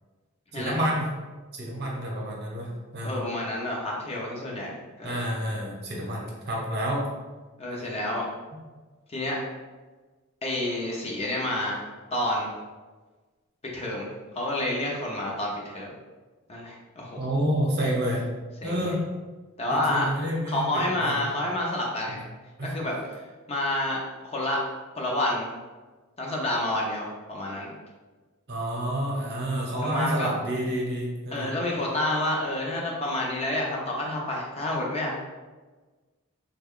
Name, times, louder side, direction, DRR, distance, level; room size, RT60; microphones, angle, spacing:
voice 1, 0.5-1.1 1.5-3.2 5.0-7.0 17.2-18.2 18.6-19.0 19.7-21.1 22.1-22.2 22.6-22.7 28.5-31.5, equal, 50° right, -2 dB, 0.8 m, -29 dB
voice 2, 3.0-5.2 7.6-8.2 9.1-9.4 10.4-11.8 12.1-12.5 13.7-15.9 16.5-17.2 18.6-18.9 19.6-20.1 20.5-22.2 22.6-24.0 24.3-24.6 25.0-25.5 26.2-27.7 29.8-30.3 31.3-35.1, left 1 dB, 30° left, -2 dB, 0.6 m, -29 dB
3.3 x 2.2 x 3.6 m, 1.3 s
head